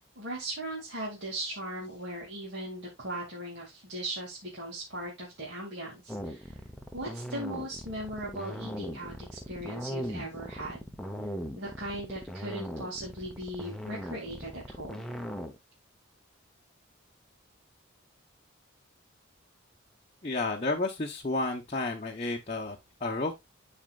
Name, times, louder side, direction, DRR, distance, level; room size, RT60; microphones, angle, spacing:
voice 1, 0.2-6.6 6.9-10.8 11.5-15.1, right 1 dB, 55° right, 2.4 m, -38 dB
sound 1, 6.1-15.6, equal, ahead, 0.9 m, -39 dB
voice 2, 20.2-23.3, left 2 dB, 30° left, 0.9 m, -31 dB
13.0 x 4.4 x 2.4 m
head